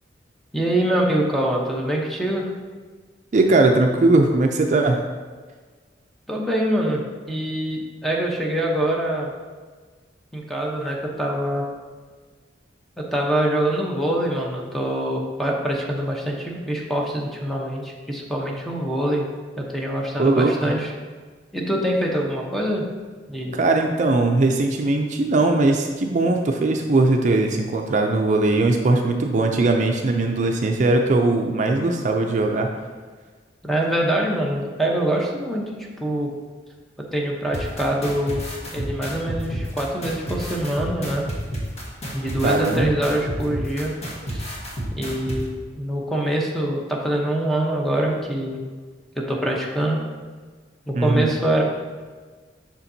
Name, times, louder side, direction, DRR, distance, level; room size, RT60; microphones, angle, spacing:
voice 1, 0.5-2.5 6.3-9.3 10.3-11.7 13.0-19.3 19.6-20.9 21.5-22.8 23.3-23.6 33.6-35.6 36.0-36.3 37.1-38.4 38.7-41.2 42.1-43.9 44.3-44.5 45.0-45.5 45.8-48.6 49.2-50.0 50.9-51.6, right 1 dB, ahead, -2 dB, 0.8 m, -24 dB
voice 2, 3.3-5.0 20.2-20.5 23.5-32.7 42.4-42.9 51.0-51.3, right 2 dB, 45° right, 3 dB, 0.4 m, -19 dB
sound 1, 37.5-45.4, right 1 dB, 40° left, 1.4 m, -30 dB
7.1 x 5.8 x 2.7 m, 1.4 s
head